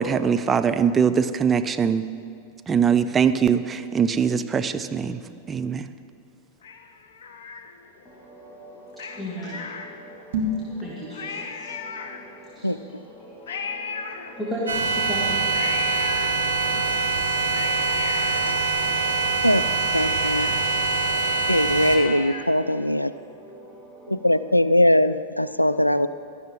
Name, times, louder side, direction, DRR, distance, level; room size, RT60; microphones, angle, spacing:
voice 1, 0.0-2.0 2.7-5.2 5.5-5.9, right 7 dB, 20° right, 9 dB, 0.5 m, -22 dB
Cat, 6.6-8.1 8.9-10.3 10.8-10.9 11.1-12.6 13.5-14.8 15.5-16.8 17.2-19.3 19.6-19.7 19.9-22.7 23.1-23.2, left 5 dB, 60° left, 0.8 m, -37 dB
voice 2, 8.1-22.0 23.0-24.5, equal, 5° right, -7 dB, 2.1 m, -39 dB
sound 1, 10.2-10.7, left 1 dB, 55° right, 1.8 m, -26 dB
sound 2, 14.7-22.0, right 3 dB, 80° right, 1.3 m, -24 dB
voice 3, 19.9-20.5 21.5-23.1 24.1-26.1, left 1 dB, 85° left, 15 dB, 0.3 m, -21 dB
16.0 x 12.5 x 3.6 m, 2.4 s
figure-of-eight pair, 90°, 0 cm